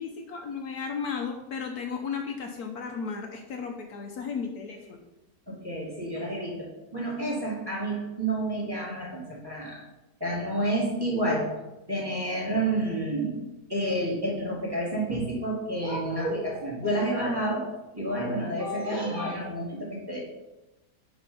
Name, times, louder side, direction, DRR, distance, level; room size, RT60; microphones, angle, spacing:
voice 1, 0.0-5.0, left 5 dB, 65° left, 3 dB, 1.3 m, -34 dB
voice 2, 5.5-9.8 10.2-11.6 11.9-13.3 13.7-20.2, right 1 dB, 15° right, -4 dB, 2.0 m, -29 dB
9.2 x 4.1 x 5.3 m, 1.0 s
omnidirectional pair, 1.8 m